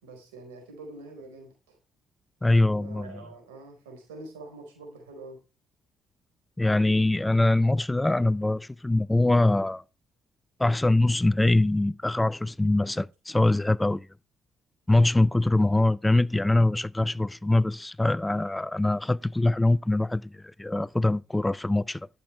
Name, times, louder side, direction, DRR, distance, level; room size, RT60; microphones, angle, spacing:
voice 1, 0.0-1.8 2.8-5.4, right 2 dB, 85° right, 4.7 m, -45 dB
voice 2, 2.4-3.2 6.6-9.8 10.6-14.1 14.9-22.1, left 2 dB, 15° left, 0.4 m, -23 dB
12.0 x 7.8 x 3.4 m
hypercardioid pair, 45°, 0 cm